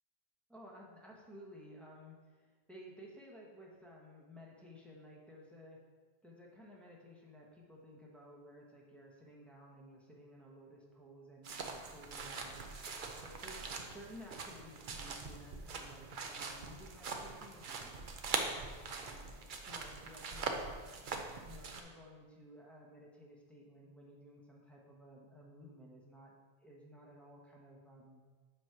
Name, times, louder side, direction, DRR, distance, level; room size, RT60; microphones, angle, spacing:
voice 1, 0.5-5.8 6.2-17.9 18.5-19.3 19.7-20.9 21.4-28.2, equal, ahead, -3 dB, 1.0 m, -55 dB
sound 1, 11.4-21.8, right 4 dB, 55° right, 0.8 m, -42 dB
7.9 x 3.1 x 5.8 m, 1.4 s
omnidirectional pair, 1.1 m